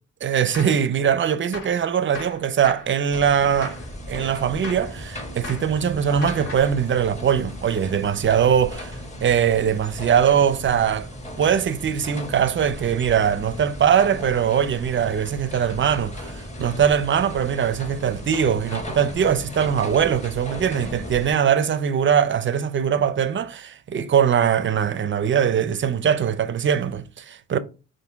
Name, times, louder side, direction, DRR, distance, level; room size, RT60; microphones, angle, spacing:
voice 1, 0.2-3.8 4.1-11.1 11.4-27.6, right 8 dB, 40° right, 0.6 m, -21 dB
Gunshot gunfire, 0.5-0.9 1.5-1.8 2.1-2.9 3.6-3.9 4.6-4.9 5.4-5.7 6.2-6.8, left 3 dB, 70° left, 1.8 m, -37 dB
sound 1, 3.1-21.3, equal, 20° left, 1.3 m, -36 dB
5.5 x 2.7 x 3.6 m
cardioid pair, 85°, 32 cm